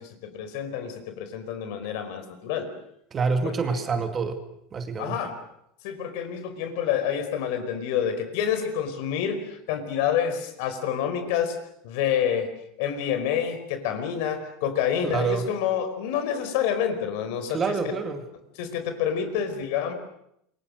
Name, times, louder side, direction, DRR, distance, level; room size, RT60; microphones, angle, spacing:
voice 1, 0.0-2.7 3.4-3.8 5.0-5.4 5.8-11.6 11.8-12.5 12.8-17.6 18.6-19.9, left 8 dB, 65° left, 9 dB, 4.9 m, -28 dB
voice 2, 3.1-4.4 4.7-5.2 15.0-15.4 17.5-18.2, right 4 dB, 20° right, 7 dB, 2.3 m, -27 dB
27.5 x 24.0 x 6.5 m, 0.75 s
supercardioid pair, 160°, 0 cm